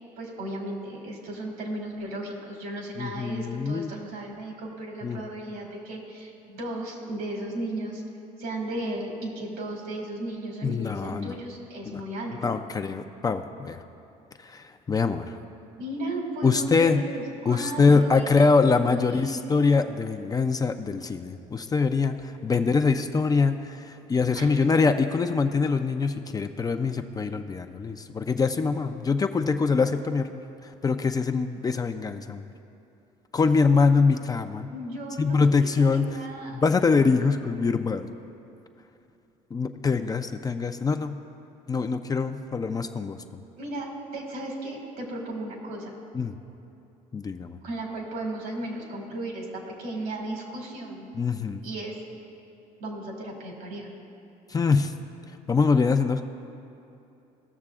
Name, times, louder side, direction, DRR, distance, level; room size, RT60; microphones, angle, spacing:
voice 1, 0.2-8.0 8.4-12.6 15.8-19.7 24.3-24.6 34.7-36.6 43.6-46.0 47.6-51.1 51.6-52.0 52.8-53.9, right 1 dB, 70° right, 0 dB, 2.2 m, -35 dB
voice 2, 3.0-3.9 5.0-5.2 10.6-11.4 12.3-13.8 14.4-15.4 16.4-17.0 17.5-30.3 30.6-32.4 33.3-34.7 35.2-36.1 36.5-38.1 39.5-41.2 41.7-43.2 46.1-46.3 47.1-47.6 51.1-51.6 54.5-54.9 55.5-56.2, left 4 dB, 25° left, 7 dB, 0.4 m, -24 dB
18.0 x 6.6 x 2.4 m, 2.8 s
supercardioid pair, 90°, 16 cm